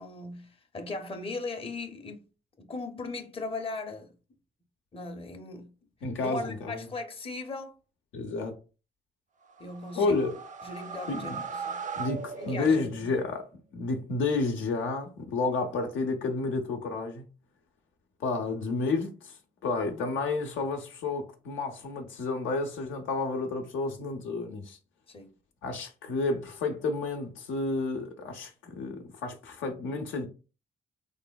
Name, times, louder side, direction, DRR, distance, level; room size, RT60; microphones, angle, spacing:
voice 1, 0.0-2.2 2.6-4.1 4.9-5.7 6.2-7.8 9.6-10.2 10.6-11.8 12.4-13.1 25.1-25.3, left 3 dB, 30° left, 0.6 m, -38 dB
voice 2, 6.0-6.9 8.1-8.6 10.0-10.3 11.1-11.4 12.0-17.3 18.2-24.8 25.6-30.3, left 3 dB, 75° left, 0.6 m, -31 dB
sound 1, 9.4-13.2, right 5 dB, 40° right, 0.4 m, -39 dB
3.2 x 2.1 x 2.2 m
supercardioid pair, 50°, 20 cm